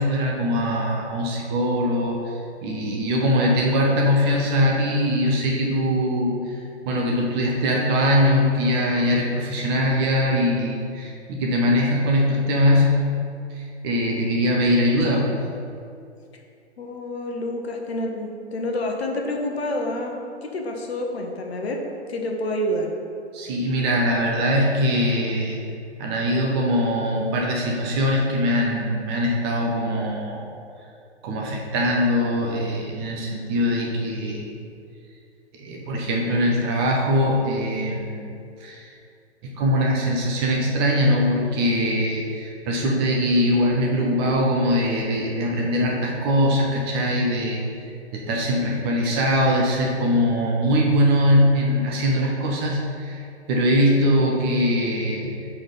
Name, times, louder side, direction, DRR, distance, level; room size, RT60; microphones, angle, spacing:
voice 1, 0.0-2.3 2.6-6.6 6.8-13.0 13.5-15.3 23.3-25.6 26.0-30.5 31.2-34.5 35.5-38.2 38.6-38.9 39.4-47.6 48.1-55.3, equal, 20° right, -2 dB, 0.6 m, -22 dB
voice 2, 16.8-21.8 22.1-22.9, left 1 dB, 65° left, 2 dB, 1.0 m, -28 dB
4.8 x 4.2 x 5.2 m, 2.5 s
figure-of-eight pair, 125°, 34 cm